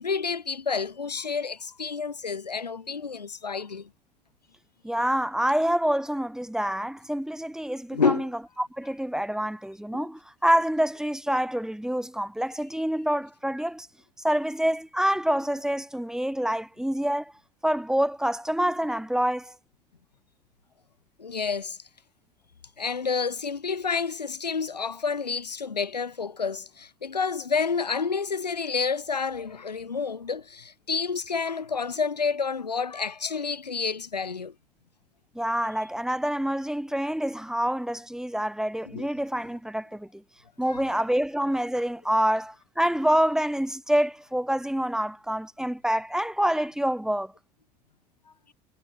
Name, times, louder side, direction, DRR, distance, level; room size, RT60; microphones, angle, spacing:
voice 1, 0.0-3.9 7.9-8.3 9.9-10.1 21.2-21.8 22.8-34.5 38.9-39.1 40.7-40.8, left 5 dB, 80° left, 4.5 m, -29 dB
voice 2, 4.8-8.3 8.6-13.9 14.2-17.3 17.6-19.5 35.3-40.2 40.6-47.3, equal, 5° right, 5.2 m, -27 dB
figure-of-eight pair, 65°, 21 cm